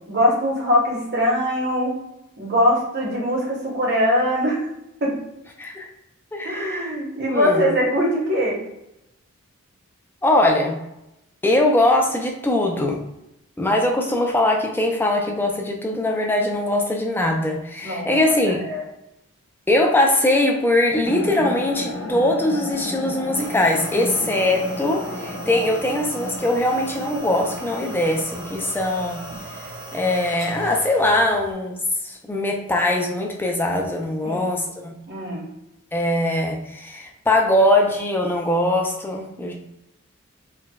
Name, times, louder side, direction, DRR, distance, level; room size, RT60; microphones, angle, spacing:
voice 1, 0.1-1.9 2.4-4.6 5.0-5.2 6.4-8.6 17.8-18.2 18.6-18.8 34.2-34.5 35.1-35.4, left 1 dB, 50° right, -3 dB, 0.9 m, -22 dB
voice 2, 5.6-5.9 6.3-6.9 7.3-7.6 10.2-10.8 11.4-13.0 13.6-18.6 19.7-29.2 29.5-29.6 29.9-34.9 35.9-39.5, left 1 dB, 10° left, 1 dB, 0.4 m, -21 dB
sound 1, 21.0-28.2, left 1 dB, 50° left, 0.6 m, -33 dB
sound 2, 23.3-31.5, right 2 dB, 70° right, 1.4 m, -37 dB
4.5 x 2.2 x 2.2 m, 0.87 s
head